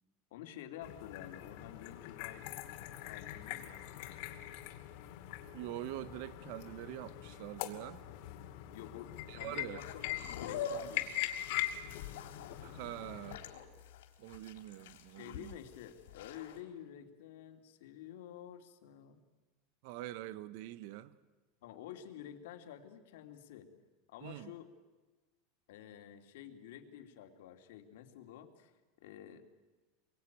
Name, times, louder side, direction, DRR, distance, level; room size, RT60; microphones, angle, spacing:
voice 1, 0.3-2.5 3.1-4.2 8.7-11.5 15.2-19.2 21.6-23.7 24.1-24.7 25.7-28.7 29.0-29.4, left 10 dB, 65° left, 3.0 m, -50 dB
sound 1, 0.8-13.4, left 13 dB, 50° left, 2.4 m, -42 dB
voice 2, 5.5-8.0 9.3-9.8 12.6-13.5 14.2-15.6 19.8-21.2 24.2-24.5, right 15 dB, 50° right, 0.9 m, -44 dB
sound 2, 9.8-16.6, left 7 dB, 80° left, 3.8 m, -45 dB
27.0 x 23.0 x 9.4 m
supercardioid pair, 175°, 0 cm